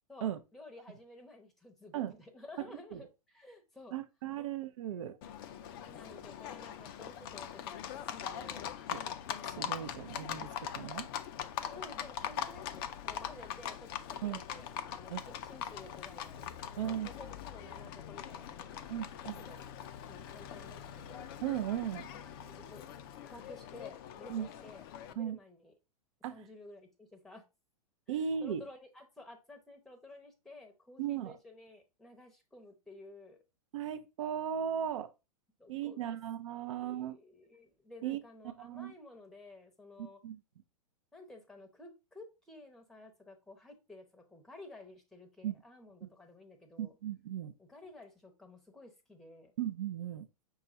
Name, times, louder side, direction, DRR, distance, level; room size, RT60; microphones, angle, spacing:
voice 1, 0.1-3.9 4.4-4.5 5.8-7.7 8.1-8.7 11.6-21.3 22.1-22.9 23.2-25.7 26.3-27.4 28.1-28.2 28.4-33.4 35.6-36.2 36.6-40.2 41.1-46.9 47.6-49.5, left 2 dB, ahead, 0.7 m, -53 dB
voice 2, 3.9-5.2 8.9-9.0 9.4-11.1 14.2-14.4 15.1-15.2 16.8-17.1 18.9-19.5 21.4-22.1 24.3-24.5 25.2-25.4 26.2-26.4 28.1-28.6 31.0-31.3 33.7-35.1 35.7-37.2 38.0-38.2 38.6-38.9 40.0-40.4 45.4-45.6 46.0-46.1 46.8-47.5 49.6-50.3, right 9 dB, 55° right, 0.5 m, -37 dB
Livestock farm animals working animals, 5.2-25.1, left 9 dB, 35° left, 0.4 m, -42 dB
5.9 x 2.3 x 3.8 m
figure-of-eight pair, 105°, 20 cm